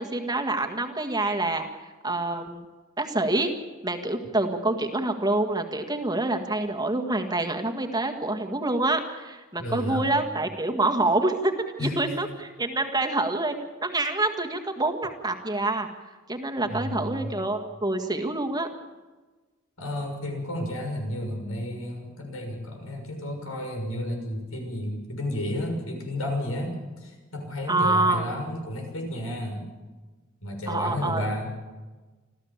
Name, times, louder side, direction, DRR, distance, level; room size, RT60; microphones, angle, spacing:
voice 1, 0.0-2.7 3.0-3.5 3.8-13.6 13.8-15.9 16.3-18.7 27.7-28.3 30.7-31.2, right 2 dB, 20° right, 4 dB, 1.8 m, -26 dB
voice 2, 9.6-10.0 11.8-12.1 16.7-17.3 19.8-29.7 30.4-31.5, left 1 dB, 85° left, 3 dB, 6.4 m, -32 dB
26.5 x 14.5 x 7.4 m, 1.3 s
head